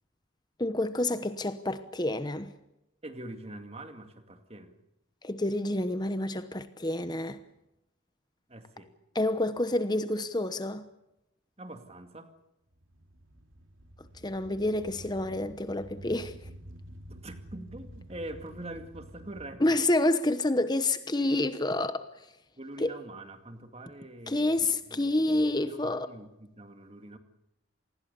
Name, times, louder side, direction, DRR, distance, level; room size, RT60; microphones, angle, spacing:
voice 1, 0.6-2.5 5.2-7.4 9.1-10.8 14.2-16.3 19.6-22.0 22.8-22.9 24.3-26.1, left 1 dB, 20° left, 0.9 m, -28 dB
voice 2, 3.0-4.7 8.5-8.9 11.6-12.3 17.1-19.8 21.2-21.3 22.6-27.2, right 1 dB, 30° right, 2.2 m, -44 dB
sound 1, 12.7-19.5, right 1 dB, 70° right, 3.1 m, -48 dB
27.0 x 20.0 x 6.9 m
head